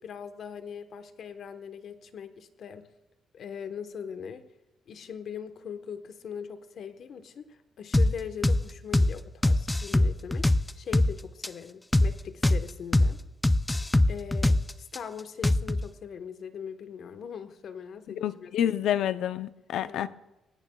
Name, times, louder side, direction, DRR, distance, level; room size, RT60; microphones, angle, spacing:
voice 1, 0.0-2.9 3.3-4.4 4.9-10.5 10.8-13.2 14.1-18.7 19.8-20.1, left 7 dB, 60° left, 9 dB, 1.1 m, -41 dB
sound 1, 7.9-8.1 8.4-8.6 8.9-9.1 9.4-11.1 11.4-11.5 11.9-12.1 12.4-12.6 12.9-13.1 13.4-15.0 15.4-15.9, left 1 dB, 10° left, 0.5 m, -22 dB
voice 2, 18.2-20.1, left 10 dB, 80° left, 13 dB, 0.6 m, -28 dB
19.5 x 16.0 x 2.3 m, 1.0 s
cardioid pair, 90°, 0 cm